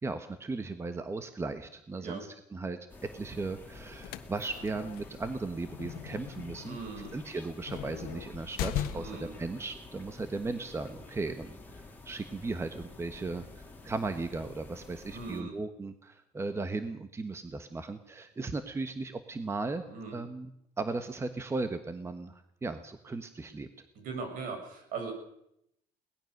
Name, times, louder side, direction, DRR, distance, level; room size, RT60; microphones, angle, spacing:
voice 1, 0.0-2.8 3.1-6.8 7.1-19.8 20.1-20.5 20.8-23.7, right 3 dB, 15° right, 9 dB, 1.3 m, -36 dB
Distant shearwaters near the sea (weird night birds), 2.9-15.4, left 3 dB, 10° left, 3.8 m, -50 dB
sound 1, 3.8-9.4, left 11 dB, 85° left, 1.5 m, -39 dB
voice 2, 6.7-7.1 8.9-9.3 15.1-15.5 19.8-20.2 24.0-25.1, right 4 dB, 65° right, 4 dB, 7.4 m, -39 dB
22.5 x 19.0 x 6.6 m, 0.77 s
cardioid pair, 135°, 15 cm